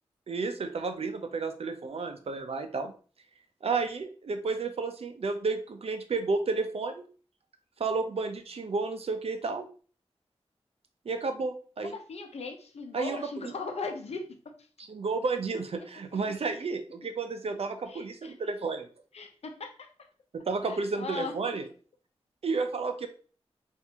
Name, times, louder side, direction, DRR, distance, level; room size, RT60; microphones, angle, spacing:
voice 1, 0.3-2.9 3.6-7.1 7.8-9.7 11.1-11.9 12.9-13.5 14.9-18.9 20.3-21.7 22.4-23.1, right 4 dB, 65° right, 7 dB, 0.6 m, -32 dB
voice 2, 11.8-14.5 17.9-18.3 19.1-19.9 20.6-21.3, left 4 dB, 80° left, 5 dB, 0.7 m, -38 dB
4.4 x 2.6 x 2.8 m, 0.40 s
wide cardioid pair, 70°, 11 cm